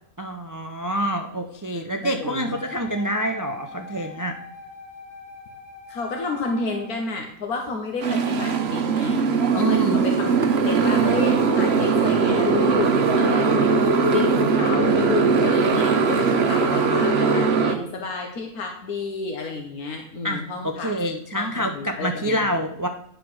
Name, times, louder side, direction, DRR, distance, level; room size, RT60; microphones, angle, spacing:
voice 1, 0.2-4.4 9.6-10.0 20.2-22.9, right 1 dB, 25° right, 5 dB, 0.4 m, -26 dB
voice 2, 2.0-2.6 5.9-10.3 10.6-20.9 21.3-22.5, left 3 dB, 85° left, 2 dB, 1.6 m, -31 dB
Wind instrument woodwind instrument, 2.2-7.1, left 3 dB, 50° left, 3.9 m, -43 dB
Motorcycle, 8.0-17.8, right 4 dB, 50° right, 1.1 m, -20 dB
10.5 x 4.9 x 6.2 m, 0.76 s
omnidirectional pair, 1.5 m